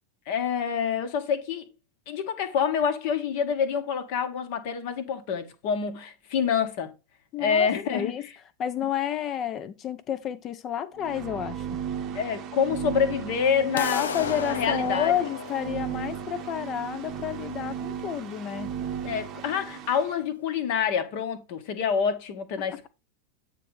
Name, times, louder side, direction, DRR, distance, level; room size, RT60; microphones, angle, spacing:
voice 1, 0.3-1.7 2.1-6.9 7.4-8.1 12.1-14.0 14.5-15.1 19.0-22.9, left 7 dB, 50° left, 1.5 m, -27 dB
voice 2, 7.3-8.3 8.6-11.7 13.6-18.7, left 10 dB, 30° left, 0.8 m, -30 dB
sound 1, 11.0-20.1, right 8 dB, 35° right, 0.9 m, -35 dB
sound 2, 13.8-19.7, left 6 dB, 65° left, 0.6 m, -36 dB
9.1 x 3.3 x 5.4 m
figure-of-eight pair, 90°, 0 cm